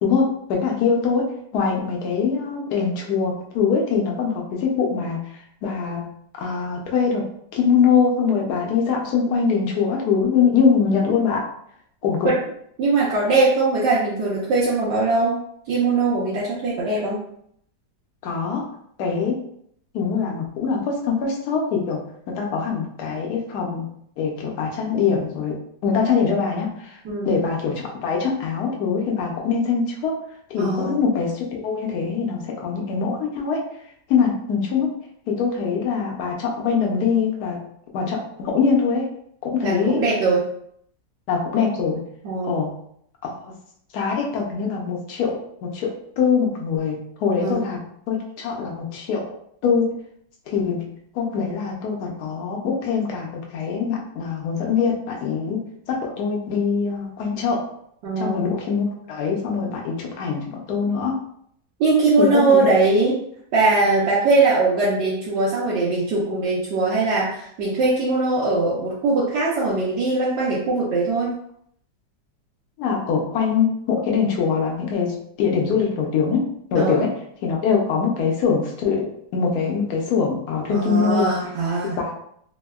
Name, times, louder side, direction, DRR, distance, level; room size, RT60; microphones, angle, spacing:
voice 1, 0.0-5.2 5.6-6.1 6.4-7.3 7.5-11.4 12.0-12.3 18.2-18.7 19.0-19.4 19.9-22.0 22.3-23.9 24.2-25.6 25.8-27.0 27.3-30.2 30.5-33.6 34.1-34.9 35.3-37.6 37.9-39.1 39.4-40.0 41.3-42.0 42.4-42.7 43.2-43.5 43.9-45.9 46.2-49.2 49.6-49.9 50.5-50.9 51.1-57.7 58.2-61.2 62.2-62.6 72.8-77.1 77.4-79.1 79.3-81.3 82.0-82.1, left 6 dB, 70° left, 0 dB, 1.1 m, -23 dB
voice 2, 12.8-15.4 15.7-17.2 27.0-27.3 30.6-31.0 39.6-40.4 42.2-42.6 47.4-47.6 58.0-58.4 61.8-63.2 63.5-71.3 76.8-77.0 80.7-82.0, right 3 dB, 75° right, -7 dB, 1.3 m, -21 dB
3.4 x 2.1 x 2.2 m, 0.68 s
omnidirectional pair, 1.9 m